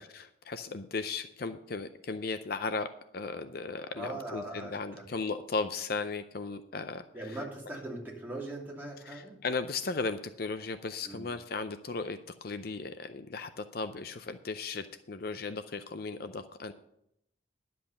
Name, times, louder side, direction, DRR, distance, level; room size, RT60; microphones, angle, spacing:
voice 1, 0.0-7.4 9.0-16.7, left 4 dB, 50° left, 10 dB, 0.5 m, -36 dB
voice 2, 3.9-4.7 7.1-9.4 11.0-11.3, right 1 dB, 10° right, -3 dB, 2.8 m, -40 dB
10.5 x 7.7 x 6.8 m, 0.77 s
head